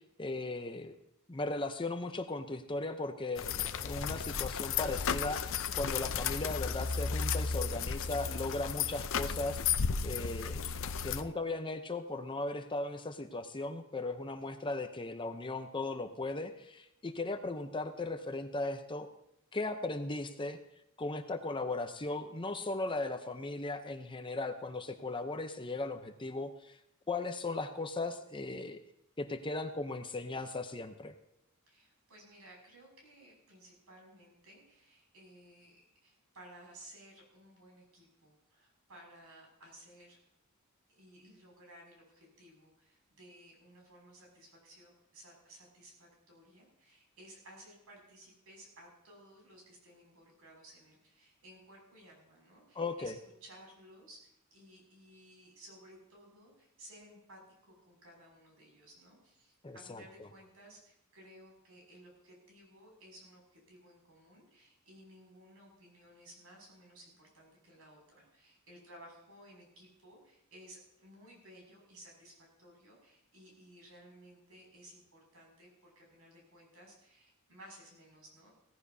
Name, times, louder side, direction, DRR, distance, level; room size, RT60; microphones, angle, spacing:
voice 1, 0.2-1.0 1.3-9.6 10.0-10.7 11.0-19.1 19.5-20.6 21.0-26.8 27.1-28.8 29.2-31.1 52.8-53.1 59.6-60.0, left 2 dB, 25° left, 8 dB, 0.7 m, -37 dB
sound 1, 3.4-11.2, left 6 dB, 65° left, 0.6 m, -34 dB
voice 2, 31.7-35.8 36.0-40.2 40.9-78.5, right 1 dB, 75° right, -1 dB, 6.6 m, -57 dB
17.0 x 15.0 x 2.8 m, 0.78 s
head